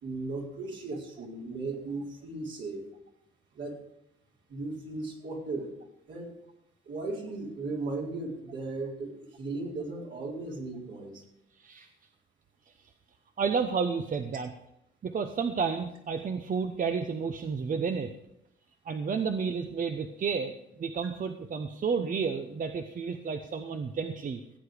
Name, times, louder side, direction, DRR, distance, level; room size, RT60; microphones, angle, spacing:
voice 1, 0.0-2.9 3.5-3.8 4.5-5.7 6.1-6.3 6.9-11.2, right 3 dB, 65° right, -2 dB, 4.3 m, -36 dB
voice 2, 11.6-11.9 12.8-12.9 13.4-14.5 15.0-18.1 18.8-20.5 20.8-24.4, right 5 dB, 45° right, 7 dB, 0.9 m, -31 dB
16.5 x 8.3 x 5.1 m, 0.82 s
cardioid pair, 90°, 20 cm